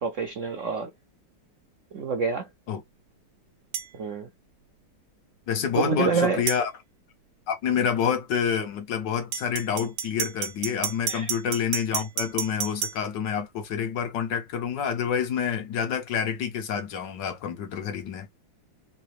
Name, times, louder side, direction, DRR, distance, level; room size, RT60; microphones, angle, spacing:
voice 1, 0.0-0.9 1.9-2.5 3.9-4.3 5.8-6.4 11.1-11.3, right 4 dB, 65° right, 0.7 m, -27 dB
sound 1, 3.7-3.9 6.5-6.6 9.3-13.0, right 9 dB, 80° right, 1.4 m, -30 dB
voice 2, 5.5-6.7 7.5-18.3, left 7 dB, 70° left, 1.6 m, -28 dB
3.8 x 2.8 x 3.1 m
omnidirectional pair, 2.0 m